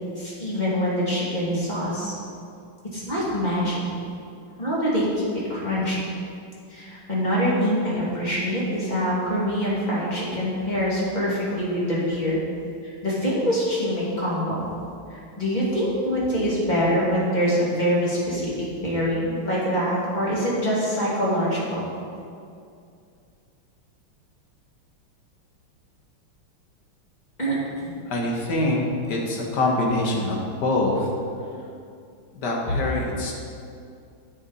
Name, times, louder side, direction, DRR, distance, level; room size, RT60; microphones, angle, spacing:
voice 1, 0.2-2.1 2.9-3.8 4.6-6.0 6.7-12.4 12.8-14.7 15.1-18.5 18.8-21.8 27.4-27.6, equal, 20° left, -7 dB, 2.3 m, -24 dB
voice 2, 28.1-31.1 32.3-33.3, left 2 dB, 55° left, -2 dB, 1.9 m, -24 dB
9.9 x 7.9 x 4.1 m, 2.4 s
omnidirectional pair, 2.4 m